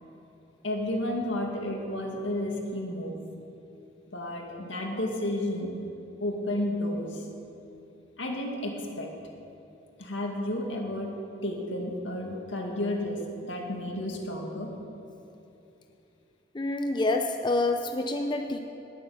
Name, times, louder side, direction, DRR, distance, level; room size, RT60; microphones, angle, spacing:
voice 1, 0.6-3.2 4.1-5.8 6.2-7.2 8.2-9.1 10.0-11.1 11.4-14.7, left 1 dB, 75° left, 1 dB, 2.3 m, -32 dB
voice 2, 16.5-18.6, left 2 dB, 25° left, 3 dB, 0.6 m, -27 dB
19.5 x 8.5 x 7.1 m, 2.8 s
head